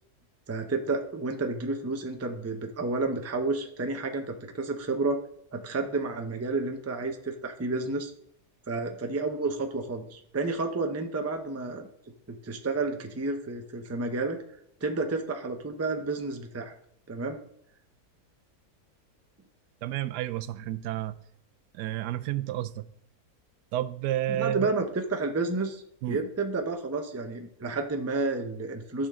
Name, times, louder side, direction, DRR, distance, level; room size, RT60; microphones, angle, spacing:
voice 1, 0.5-5.2 5.5-8.1 8.7-11.9 12.3-14.4 14.8-16.7 17.1-17.4 24.4-25.8 26.1-29.1, right 3 dB, 15° right, 0.5 m, -30 dB
voice 2, 19.8-21.2 21.7-22.9 23.7-24.7 26.0-26.2, right 13 dB, 90° right, 1.2 m, -31 dB
13.5 x 6.2 x 3.7 m
omnidirectional pair, 1.7 m